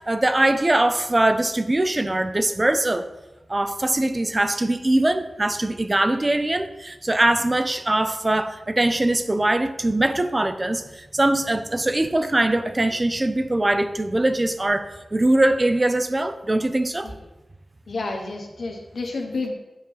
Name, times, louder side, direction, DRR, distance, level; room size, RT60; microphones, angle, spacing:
voice 1, 0.1-3.1 3.5-17.1, right 1 dB, 25° right, 9 dB, 0.4 m, -22 dB
voice 2, 17.9-19.5, left 3 dB, 75° left, 2 dB, 1.1 m, -30 dB
8.8 x 3.1 x 5.4 m, 1.0 s
wide cardioid pair, 75°, 0 cm